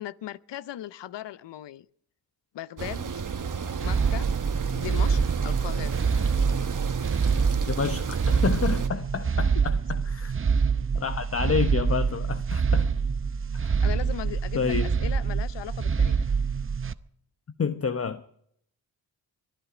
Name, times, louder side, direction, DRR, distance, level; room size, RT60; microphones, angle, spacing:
voice 1, 0.0-1.9 2.5-3.1 3.8-4.3 4.7-6.0 9.5-9.7 13.8-16.3, left 12 dB, 75° left, 0.7 m, -38 dB
sound 1, 2.8-8.9, right 6 dB, 45° right, 1.2 m, -33 dB
sound 2, 3.8-16.9, right 5 dB, 30° right, 0.7 m, -25 dB
voice 2, 7.7-10.3 10.9-12.9 13.5-13.7 14.5-14.9 17.6-18.2, left 6 dB, 35° left, 0.9 m, -29 dB
22.5 x 11.5 x 5.0 m
cardioid pair, 60°, 43 cm